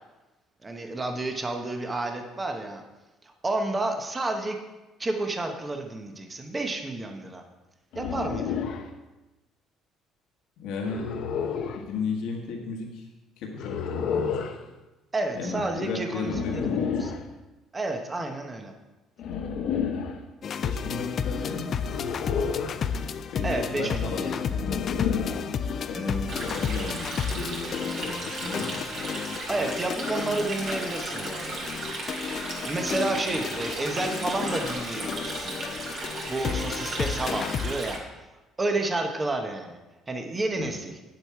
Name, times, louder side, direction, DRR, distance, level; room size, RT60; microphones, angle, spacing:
voice 1, 0.6-2.8 3.2-4.6 5.0-7.4 7.9-8.6 15.1-17.1 17.7-18.7 23.4-24.4 25.9-26.2 29.5-31.7 32.5-35.6 36.3-38.0 38.6-39.8 40.1-41.0, right 2 dB, 20° right, 4 dB, 1.0 m, -30 dB
sound 1, 7.9-8.9 10.8-11.8 13.6-14.6 16.2-17.2 19.2-20.2 21.8-22.9 24.5-25.5, left 6 dB, 65° left, 0.8 m, -30 dB
voice 2, 10.6-11.1 11.8-13.1 13.4-14.4 15.3-17.1 20.6-21.8 23.0-24.7 25.8-28.7 40.5-40.7, left 4 dB, 80° left, 0 dB, 1.5 m, -34 dB
sound 2, 20.4-37.7, left 6 dB, 40° left, 0.4 m, -32 dB
Stream, 26.3-38.0, right 2 dB, 45° right, 2.6 m, -35 dB
9.0 x 7.8 x 4.7 m, 1.1 s
cardioid pair, 135°, 0 cm